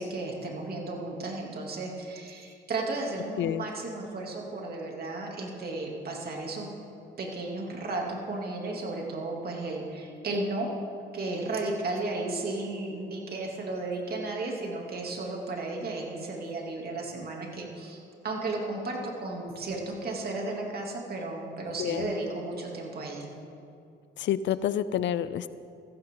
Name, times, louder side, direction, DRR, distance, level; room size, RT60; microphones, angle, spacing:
voice 1, 0.0-6.7 7.2-10.7 11.1-23.3, right 2 dB, 50° right, -1 dB, 2.9 m, -34 dB
voice 2, 21.8-22.1 24.2-25.5, left 10 dB, 70° left, 16 dB, 0.5 m, -28 dB
16.0 x 15.0 x 3.9 m, 2.5 s
cardioid pair, 90°, 20 cm